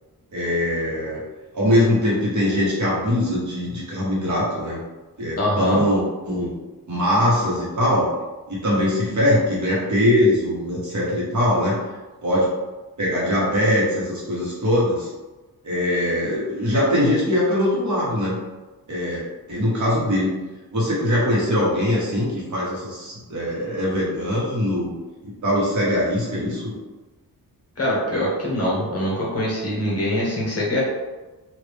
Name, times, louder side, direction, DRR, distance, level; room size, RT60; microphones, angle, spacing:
voice 1, 0.3-1.2 1.5-4.8 5.2-6.5 6.9-8.1 8.5-11.8 12.2-12.5 13.0-15.1 15.6-18.4 18.9-19.2 19.5-20.3 20.7-24.9 25.2-26.7, left 1 dB, 50° right, -6 dB, 1.2 m, -21 dB
voice 2, 5.4-5.8 27.8-30.8, left 1 dB, 40° left, -5 dB, 1.0 m, -23 dB
3.1 x 2.5 x 3.4 m, 1.2 s
wide cardioid pair, 175°, 38 cm